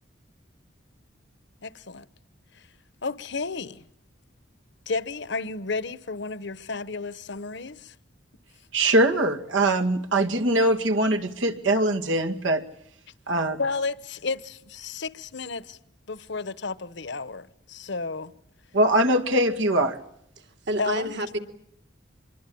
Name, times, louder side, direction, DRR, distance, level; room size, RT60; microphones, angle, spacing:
voice 1, 1.6-2.1 2.5-2.7 3.0-3.8 4.9-7.9 13.6-15.8 16.1-18.3 20.8-21.1, left 4 dB, 65° left, 1.1 m, -32 dB
voice 2, 8.7-12.6 13.3-13.6 18.7-20.0, right 1 dB, 90° right, 2.2 m, -22 dB
voice 3, 20.4-21.4, right 1 dB, 65° right, 2.7 m, -30 dB
26.0 x 22.5 x 8.7 m
head